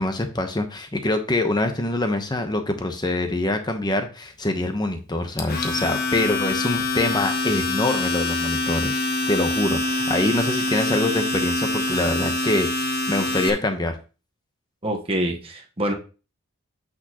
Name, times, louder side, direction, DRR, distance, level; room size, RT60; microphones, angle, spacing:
voice 1, 0.0-9.0 9.3-13.9, left 2 dB, 20° left, 6 dB, 0.9 m, -25 dB
Domestic sounds home sounds, 5.4-13.5, left 2 dB, 45° left, 1.2 m, -25 dB
voice 2, 14.8-15.9, right 1 dB, 25° right, 1 dB, 1.2 m, -26 dB
8.5 x 6.2 x 3.0 m, 0.34 s
head